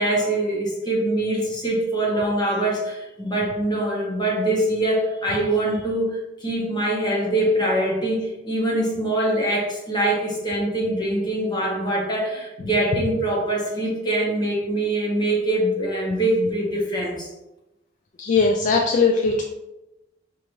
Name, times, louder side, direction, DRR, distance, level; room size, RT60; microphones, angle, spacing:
voice 1, 0.0-17.3, right 1 dB, 25° left, -3 dB, 1.0 m, -23 dB
voice 2, 18.2-19.4, left 4 dB, 45° left, 2 dB, 0.3 m, -19 dB
4.7 x 2.5 x 3.0 m, 0.97 s
head